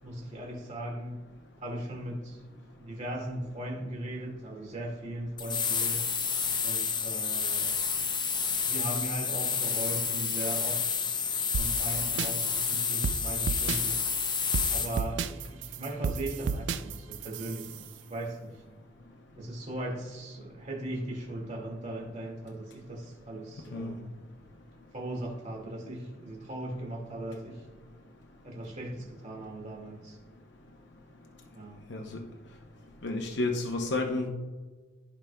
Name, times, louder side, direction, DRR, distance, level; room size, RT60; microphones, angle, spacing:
voice 1, 0.0-1.2 1.6-2.4 2.8-6.0 6.6-7.7 8.6-10.8 11.5-14.0 14.7-18.6 19.4-24.2 24.9-27.6 28.4-30.2 31.5-31.9, right 1 dB, 40° right, -1 dB, 2.0 m, -38 dB
sound 1, 5.4-15.0, left 6 dB, 25° left, 0.6 m, -30 dB
sound 2, 11.5-17.9, right 5 dB, 65° right, 0.4 m, -34 dB
voice 2, 33.0-34.3, left 2 dB, 65° left, 2 dB, 0.8 m, -30 dB
14.5 x 4.8 x 2.3 m, 1.3 s
head